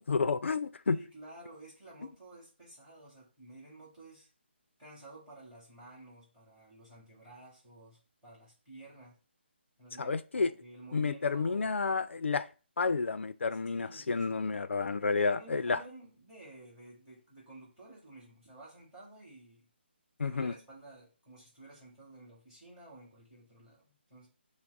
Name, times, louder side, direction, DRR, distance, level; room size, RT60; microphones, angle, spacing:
voice 1, 0.0-1.0 10.0-10.5 10.9-12.5 12.8-15.8 20.2-20.5, left 4 dB, 85° left, 0.4 m, -30 dB
voice 2, 0.9-4.3 4.8-9.2 9.8-11.8 13.7-14.5 15.2-19.7 20.2-24.3, right 2 dB, 5° right, 2.0 m, -52 dB
5.9 x 2.1 x 3.9 m
hypercardioid pair, 170°, 6 cm